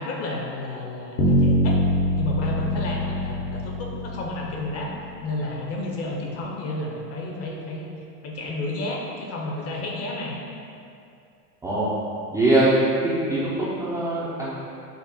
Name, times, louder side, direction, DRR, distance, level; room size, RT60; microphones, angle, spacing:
voice 1, 0.0-1.8 2.2-4.9 5.2-7.9 8.2-10.4, left 2 dB, 30° left, -1 dB, 0.6 m, -31 dB
Bass guitar, 1.2-5.2, left 1 dB, 60° left, 0.9 m, -24 dB
voice 2, 11.6-12.0 12.3-12.7 13.0-14.6, right 2 dB, 5° right, -11 dB, 0.4 m, -22 dB
5.3 x 2.0 x 4.0 m, 2.5 s
hypercardioid pair, 95°, 49 cm